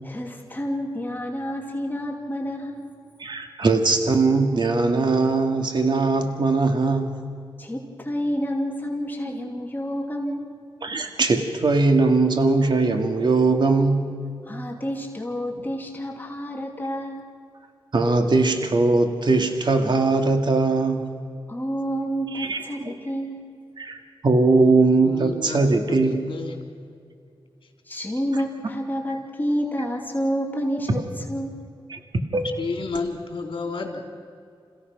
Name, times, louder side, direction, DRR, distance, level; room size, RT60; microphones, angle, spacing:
voice 1, 0.0-2.9 7.6-10.5 14.4-17.3 21.5-23.4 27.9-31.5, equal, 20° left, 0 dB, 2.7 m, -29 dB
voice 2, 3.2-7.2 10.8-14.1 17.9-21.1 22.3-22.6 23.8-24.0 24.2-26.2 31.9-32.0 32.3-32.5, right 3 dB, 55° right, 5 dB, 2.0 m, -20 dB
voice 3, 25.0-25.6 25.9-26.5 32.6-34.0, left 4 dB, 65° left, 3 dB, 3.4 m, -31 dB
27.5 x 16.0 x 6.0 m, 2.4 s
wide cardioid pair, 85°, 9 cm